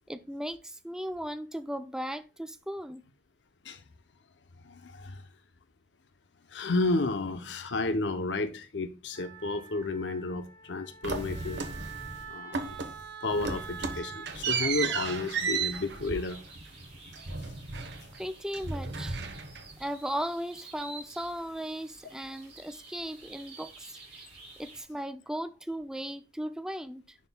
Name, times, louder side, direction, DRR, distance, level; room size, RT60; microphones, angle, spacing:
voice 1, 0.1-3.0 18.2-19.2 19.8-24.0 24.6-27.2, equal, 5° right, 0.4 m, -37 dB
voice 2, 4.6-5.2 6.5-11.6 12.3-12.8 13.2-16.4, left 2 dB, 80° left, 0.7 m, -32 dB
Wind instrument woodwind instrument, 9.1-14.3, right 6 dB, 55° right, 2.3 m, -45 dB
sound 1, 11.0-12.2 12.5-13.0 13.3-18.2 18.5-19.8, right 5 dB, 75° right, 1.0 m, -34 dB
sound 2, 14.2-24.8, right 3 dB, 35° right, 3.6 m, -51 dB
10.0 x 4.3 x 2.2 m
head